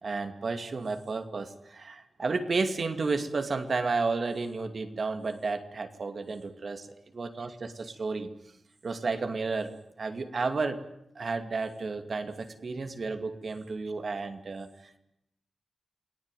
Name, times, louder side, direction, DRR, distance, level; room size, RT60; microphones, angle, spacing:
voice 1, 0.0-8.3 8.8-9.7 10.0-10.8 11.1-15.0, right 4 dB, 65° right, 7 dB, 2.6 m, -32 dB
29.0 x 18.0 x 9.3 m, 0.80 s
cardioid pair, 50°, 0 cm